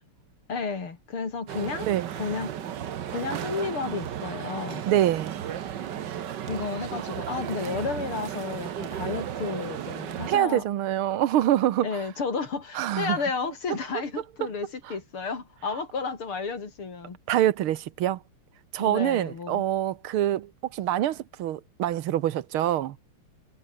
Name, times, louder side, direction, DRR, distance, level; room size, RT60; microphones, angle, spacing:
voice 1, 0.5-1.9 2.1-2.5 3.1-4.9 6.4-10.6 11.8-17.2 18.8-19.6, left 4 dB, 85° left, 4.5 m, -32 dB
sound 1, 1.5-10.4, right 10 dB, 60° right, 1.7 m, -34 dB
voice 2, 4.9-5.4 10.3-11.9 12.7-13.2 17.3-18.2 18.7-23.0, right 12 dB, 80° right, 1.8 m, -25 dB
omnidirectional pair, 2.3 m